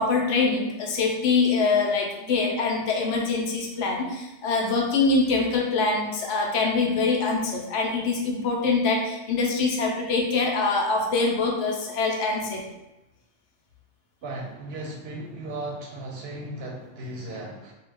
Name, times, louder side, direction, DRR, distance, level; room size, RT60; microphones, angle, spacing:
voice 1, 0.0-12.6, left 4 dB, 80° left, 0 dB, 0.9 m, -24 dB
voice 2, 14.2-17.7, right 1 dB, 65° right, -1 dB, 0.7 m, -36 dB
2.3 x 2.2 x 3.2 m, 0.98 s
omnidirectional pair, 1.2 m